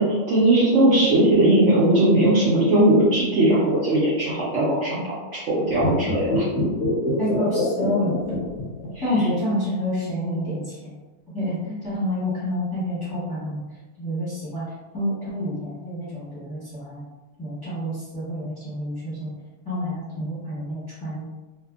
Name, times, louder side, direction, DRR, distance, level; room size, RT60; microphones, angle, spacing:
voice 1, 0.0-6.4 8.9-9.0, right 1 dB, 90° right, -8 dB, 0.6 m, -19 dB
sound 1, 5.7-9.1 9.4-9.5, left 1 dB, 70° left, 0.8 m, -25 dB
voice 2, 7.2-8.1 9.0-10.9 11.3-13.6 14.0-14.6 14.9-17.0 17.4-19.3 19.6-21.3, equal, 20° left, -11 dB, 0.7 m, -28 dB
2.6 x 2.5 x 2.3 m, 1.2 s
omnidirectional pair, 1.9 m